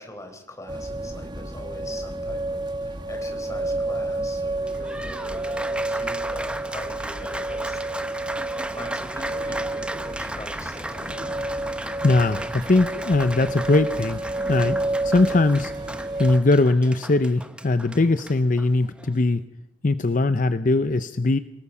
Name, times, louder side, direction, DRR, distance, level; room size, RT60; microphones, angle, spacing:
voice 1, 0.0-8.1 8.7-11.3, left 1 dB, 20° left, 5 dB, 4.1 m, -42 dB
sound 1, 0.7-16.4, right 2 dB, 25° right, 1.8 m, -30 dB
Applause, 4.5-19.2, right 1 dB, 5° right, 0.8 m, -36 dB
voice 2, 12.0-14.2 14.5-15.7 16.2-19.4 19.8-21.4, left 2 dB, 50° left, 11 dB, 0.7 m, -20 dB
27.0 x 19.0 x 5.7 m, 0.85 s
head